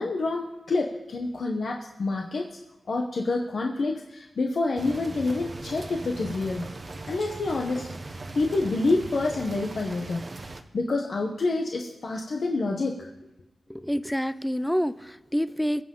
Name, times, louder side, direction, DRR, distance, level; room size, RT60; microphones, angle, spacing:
voice 1, 0.0-2.4 2.9-6.7 7.1-7.9 8.3-10.2 10.7-13.1, left 3 dB, 60° left, 1 dB, 1.0 m, -27 dB
sound 1, 4.8-10.6, right 2 dB, 35° right, 0.8 m, -39 dB
voice 2, 13.7-15.8, equal, 5° left, 13 dB, 0.4 m, -27 dB
21.5 x 7.7 x 3.8 m, 0.98 s
wide cardioid pair, 120°, 0 cm